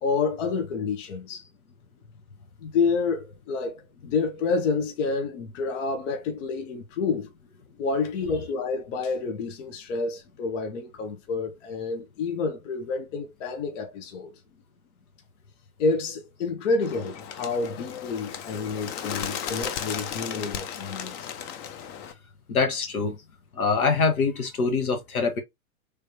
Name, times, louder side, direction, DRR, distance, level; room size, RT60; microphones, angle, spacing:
voice 1, 0.0-1.5 2.6-7.3 7.8-14.3 15.8-21.3, left 4 dB, 60° left, 0.9 m, -29 dB
Bird, 16.8-22.1, left 8 dB, 35° left, 0.6 m, -35 dB
voice 2, 22.5-23.1 23.5-25.4, left 4 dB, 80° left, 1.1 m, -24 dB
3.4 x 3.2 x 2.6 m
hypercardioid pair, 105°, 43 cm